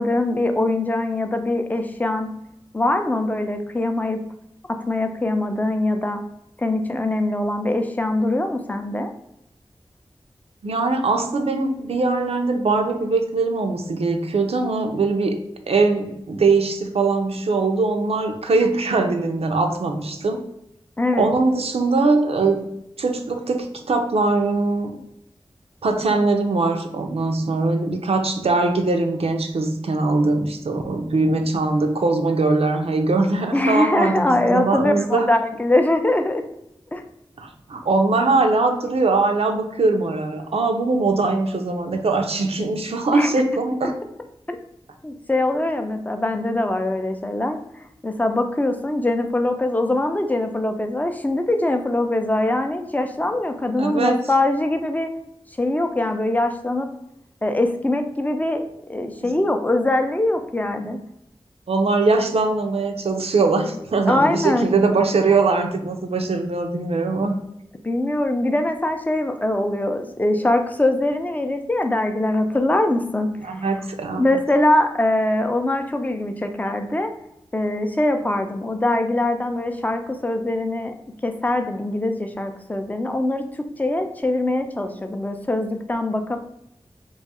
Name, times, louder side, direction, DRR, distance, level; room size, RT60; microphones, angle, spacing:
voice 1, 0.0-2.3 2.7-4.2 4.7-6.2 6.6-9.1 21.0-21.3 33.5-36.4 36.9-37.0 43.1-43.3 44.5-44.6 45.0-47.6 48.0-55.1 55.6-56.9 57.4-58.6 58.9-61.0 64.1-64.7 67.8-73.7 74.2-77.1 77.5-80.9 81.2-83.4 83.8-86.4, left 1 dB, 15° left, 6 dB, 0.4 m, -22 dB
voice 2, 10.6-15.4 15.7-20.4 21.2-22.7 23.0-25.0 25.8-35.3 37.4-43.9 53.8-54.2 59.2-59.3 61.7-67.4 73.4-74.3, right 3 dB, 75° right, 4 dB, 0.4 m, -21 dB
2.9 x 2.3 x 4.1 m, 0.80 s
wide cardioid pair, 70°, 10 cm